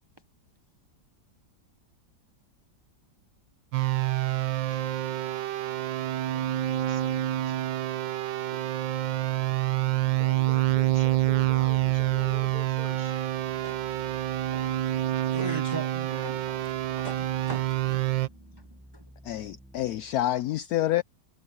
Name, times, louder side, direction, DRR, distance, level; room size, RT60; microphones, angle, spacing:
sound 1, 3.7-18.3, right 14 dB, 80° right, 1.5 m, -27 dB
voice 1, 6.2-7.7 8.5-8.7 10.2-13.3, left 5 dB, 25° left, 2.7 m, -47 dB
sound 2, 10.0-20.2, equal, ahead, 1.1 m, -53 dB
voice 2, 14.5-19.1, right 2 dB, 25° right, 0.5 m, -41 dB
voice 3, 19.2-21.0, left 13 dB, 75° left, 0.9 m, -28 dB
omnidirectional pair, 2.0 m